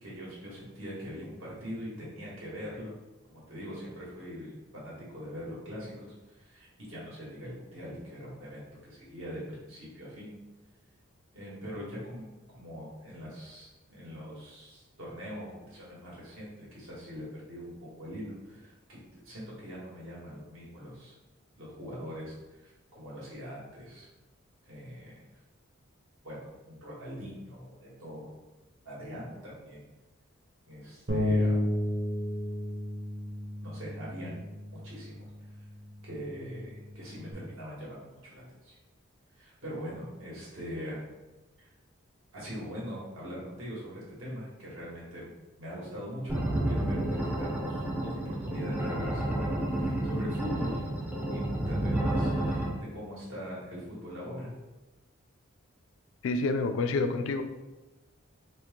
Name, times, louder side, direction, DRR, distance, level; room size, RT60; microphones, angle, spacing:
voice 1, 0.0-2.9 3.3-10.3 11.3-12.3 12.5-21.1 21.6-22.3 22.6-24.1 24.6-25.2 26.2-28.3 28.8-29.8 30.7-31.6 33.6-34.4 34.7-35.3 36.0-38.8 39.4-41.0 41.6-41.7 42.3-45.3 45.6-46.4 46.6-50.8 51.3-54.5, equal, 80° right, -6 dB, 1.4 m, -42 dB
Bass guitar, 31.1-37.3, left 1 dB, 45° right, 0.7 m, -33 dB
sound 1, 46.3-52.7, right 1 dB, 10° right, 0.4 m, -30 dB
voice 2, 56.2-57.4, left 3 dB, 70° left, 8 dB, 0.3 m, -28 dB
2.9 x 2.8 x 3.6 m, 1.1 s
head